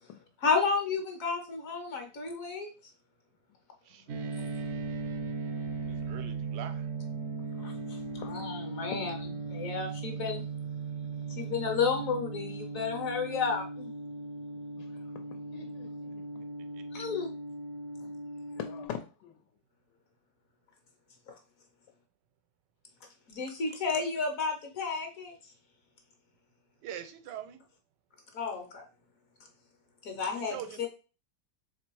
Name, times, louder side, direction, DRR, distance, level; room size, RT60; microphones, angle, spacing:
voice 1, 0.4-2.7 7.6-8.0 8.2-10.4 11.4-13.9 16.9-17.3 18.0-18.1 21.3-21.4 23.3-25.3 28.3-28.8 30.0-30.9, left 5 dB, 60° left, 1.0 m, -32 dB
voice 2, 3.8-4.2 5.9-6.9 16.7-17.0 26.8-27.6 30.3-30.9, right 10 dB, 85° right, 1.2 m, -44 dB
sound 1, 4.1-18.9, right 3 dB, 70° right, 0.6 m, -38 dB
voice 3, 14.8-16.5 18.5-19.3, left 9 dB, 85° left, 1.2 m, -43 dB
3.3 x 3.0 x 4.5 m
omnidirectional pair, 1.8 m